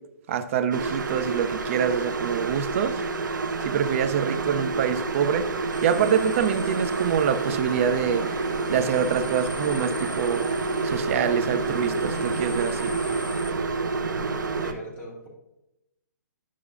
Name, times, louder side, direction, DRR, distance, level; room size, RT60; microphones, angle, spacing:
voice 1, 0.3-3.0 3.6-5.5 5.8-8.3 8.7-12.9, right 8 dB, 45° right, 9 dB, 0.5 m, -25 dB
sound 1, 0.7-14.7, right 4 dB, 90° right, 0.8 m, -29 dB
sound 2, 5.7-13.5, left 5 dB, 75° left, 0.6 m, -39 dB
voice 2, 14.6-15.3, right 1 dB, 15° left, -4 dB, 1.9 m, -39 dB
9.9 x 6.1 x 2.4 m, 0.90 s
hypercardioid pair, 150°, 10 cm